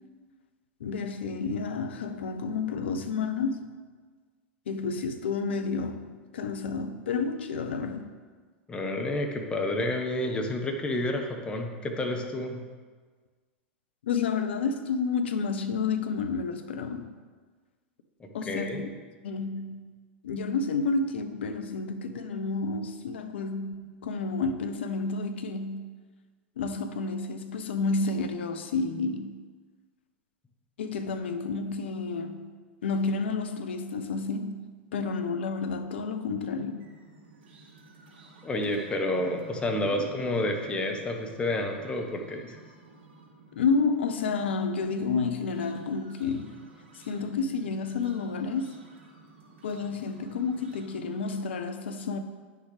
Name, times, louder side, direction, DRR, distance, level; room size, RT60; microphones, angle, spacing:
voice 1, 0.8-3.8 4.7-8.1 14.0-17.1 18.3-18.8 19.2-19.9 20.2-25.9 26.6-29.4 30.8-32.5 32.8-36.9 39.8-39.9 43.5-46.6 47.0-48.8 49.6-52.2, left 4 dB, 65° left, 7 dB, 0.7 m, -30 dB
voice 2, 8.7-12.6 18.2-18.8 38.4-42.6, left 1 dB, 15° left, 3 dB, 1.1 m, -30 dB
sound 1, 36.2-51.4, right 3 dB, 60° right, 1.6 m, -53 dB
9.4 x 6.6 x 3.3 m, 1.5 s
figure-of-eight pair, 90°, 6 cm